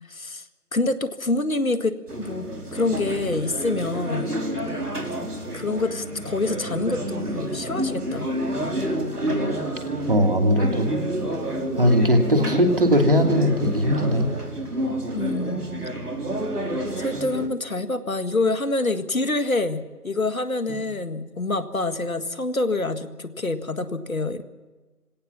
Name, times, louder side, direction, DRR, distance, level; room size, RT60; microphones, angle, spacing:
voice 1, 0.1-0.4 0.7-4.4 5.5-8.3 15.1-15.8 17.0-24.4, left 2 dB, 65° left, 10 dB, 1.9 m, -26 dB
sound 1, 2.1-17.5, right 1 dB, 90° right, 5.0 m, -29 dB
voice 2, 10.1-10.9 11.8-14.3, equal, 35° right, 4 dB, 2.8 m, -19 dB
26.0 x 17.5 x 7.1 m, 1.3 s
figure-of-eight pair, 170°, 45 cm